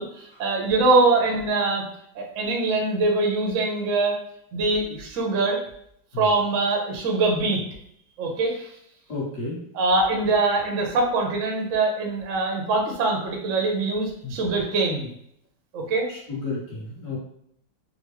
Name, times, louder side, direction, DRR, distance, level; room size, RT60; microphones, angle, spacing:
voice 1, 0.0-1.8 2.1-4.2 4.5-5.6 6.2-7.6 8.2-8.7 9.7-15.1 15.7-16.1, right 3 dB, 65° right, 1 dB, 0.7 m, -23 dB
voice 2, 9.1-9.6 14.2-14.3 16.1-17.2, left 3 dB, 45° left, -5 dB, 1.4 m, -32 dB
4.0 x 2.1 x 3.1 m, 0.71 s
omnidirectional pair, 2.2 m